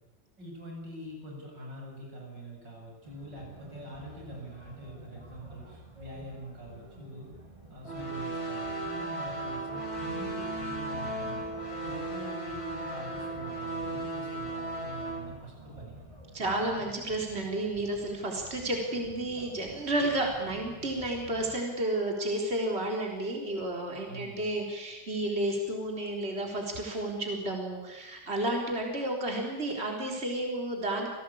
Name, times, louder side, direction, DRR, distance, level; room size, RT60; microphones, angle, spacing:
voice 1, 0.4-7.3 7.7-11.5 11.8-16.0 24.1-24.5, right 1 dB, 85° right, -1 dB, 8.8 m, -45 dB
sound 1, 3.0-21.6, right 1 dB, 15° right, 3.8 m, -50 dB
sound 2, 7.8-15.2, right 2 dB, 55° left, 4.9 m, -35 dB
voice 2, 16.3-31.1, right 1 dB, 35° right, 1 dB, 4.2 m, -31 dB
28.5 x 18.0 x 8.7 m, 1.1 s
omnidirectional pair, 1.9 m